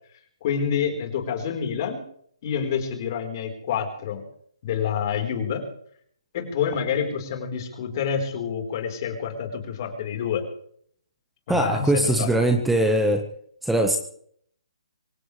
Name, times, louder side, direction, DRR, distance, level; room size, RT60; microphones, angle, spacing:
voice 1, 0.4-2.0 2.4-4.2 4.6-5.6 6.3-10.4 11.5-12.5, left 7 dB, 40° left, 3 dB, 4.4 m, -28 dB
voice 2, 11.5-13.2 13.6-14.0, right 1 dB, 5° right, 4 dB, 1.3 m, -21 dB
25.0 x 16.0 x 3.4 m, 0.63 s
hypercardioid pair, 150°, 3 cm